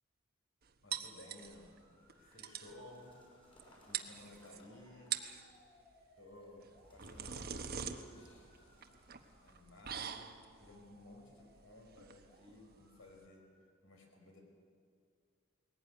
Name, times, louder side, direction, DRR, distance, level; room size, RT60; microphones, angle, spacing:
voice 1, 0.8-3.2 3.8-5.2 6.2-8.5 9.4-13.4 13.8-14.4, left 1 dB, 70° left, 2 dB, 5.0 m, -57 dB
sound 1, 0.9-1.8 2.1-2.2 2.4-2.8 3.6-3.7 3.9-4.6 5.0-5.4 6.6-13.3, right 8 dB, 50° right, 1.2 m, -44 dB
sound 2, 1.1-13.6, equal, 40° left, 5.4 m, -69 dB
sound 3, 1.4-10.3, equal, 25° left, 6.3 m, -66 dB
20.5 x 17.0 x 9.5 m, 2.2 s
head